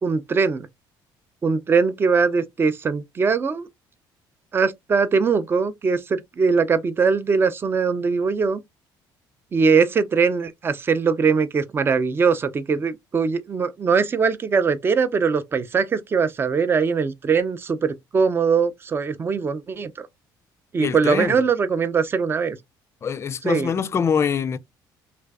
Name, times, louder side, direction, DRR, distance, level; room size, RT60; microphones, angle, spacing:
voice 1, 0.0-0.7 1.4-3.7 4.5-8.6 9.5-20.1 20.7-22.6 23.5-23.7, right 5 dB, 25° right, 0.5 m, -21 dB
voice 2, 20.8-21.4 23.0-24.6, left 7 dB, 30° left, 0.4 m, -24 dB
3.2 x 2.4 x 3.3 m
cardioid pair, 120°, 9 cm